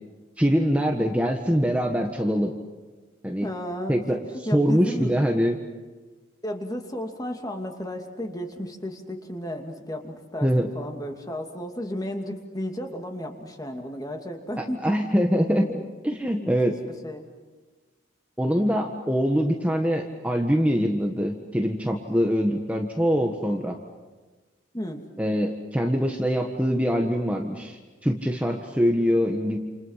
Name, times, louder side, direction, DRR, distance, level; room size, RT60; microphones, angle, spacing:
voice 1, 0.4-2.5 3.2-3.5 3.9-4.2 4.5-5.6 10.4-10.7 14.6-15.8 16.2-16.7 18.4-23.8 25.2-29.6, equal, 5° right, 2 dB, 1.5 m, -23 dB
voice 2, 3.4-3.9 4.3-5.2 6.4-15.0 16.4-16.7 17.0-17.2 24.7-25.1, equal, 20° left, 3 dB, 2.6 m, -33 dB
29.0 x 29.0 x 5.8 m, 1.3 s
head